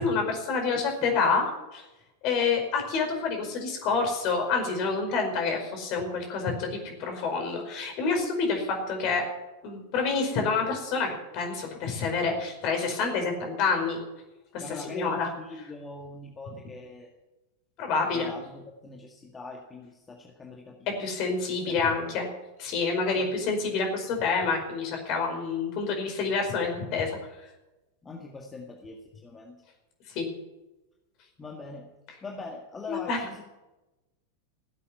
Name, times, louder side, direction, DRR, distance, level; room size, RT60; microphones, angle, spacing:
voice 1, 0.0-1.8 2.2-9.2 9.6-14.0 14.5-15.3 17.8-18.3 21.0-22.3 22.6-27.5 30.1-30.3 32.9-33.2, left 4 dB, 40° left, 3 dB, 5.1 m, -28 dB
voice 2, 14.6-17.1 18.1-21.1 21.5-22.2 23.2-23.4 28.0-29.6 31.4-33.4, left 3 dB, 15° left, 1 dB, 2.0 m, -42 dB
17.0 x 8.5 x 9.7 m, 1.0 s
figure-of-eight pair, 90°, 0 cm